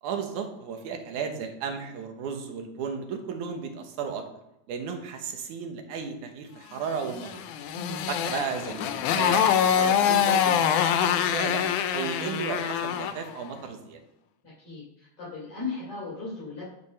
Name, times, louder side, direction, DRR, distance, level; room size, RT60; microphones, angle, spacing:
voice 1, 0.0-4.2 4.7-7.4 8.1-8.9 9.2-11.6 11.9-14.0, right 6 dB, 80° right, 5 dB, 2.6 m, -34 dB
Motorcycle, 7.2-13.2, left 9 dB, 85° left, 2.1 m, -25 dB
voice 2, 7.7-8.0 14.4-16.7, left 3 dB, 50° left, -9 dB, 4.2 m, -37 dB
10.5 x 4.7 x 5.4 m, 0.87 s
omnidirectional pair, 3.4 m